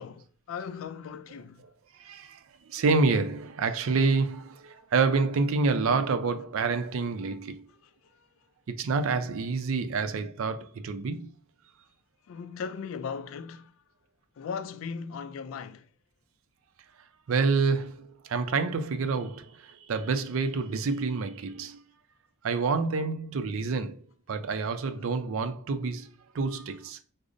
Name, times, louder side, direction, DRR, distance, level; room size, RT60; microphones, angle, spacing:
voice 1, 0.0-1.6 7.7-8.2 12.3-13.7 14.4-15.9, left 6 dB, 75° left, 0.3 m, -38 dB
voice 2, 2.0-2.4 2.7-7.6 8.7-11.3 17.3-21.8 22.4-24.0 24.3-26.1 26.3-27.0, right 4 dB, 80° right, 0.4 m, -28 dB
4.9 x 2.0 x 2.5 m
head